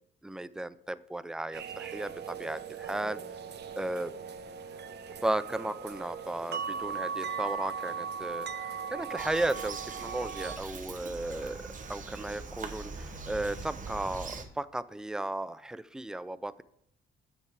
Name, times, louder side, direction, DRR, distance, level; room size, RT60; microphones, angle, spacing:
voice 1, 0.2-3.2 3.8-4.1 5.2-11.6 11.9-16.6, right 1 dB, 5° right, 16 dB, 0.3 m, -35 dB
sound 1, 1.5-10.6, right 6 dB, 55° right, 0.8 m, -38 dB
Bird vocalization bird call bird song, 9.2-14.4, right 4 dB, 40° right, 1.2 m, -42 dB
7.3 x 6.6 x 4.8 m, 0.73 s
cardioid pair, 90°, 20 cm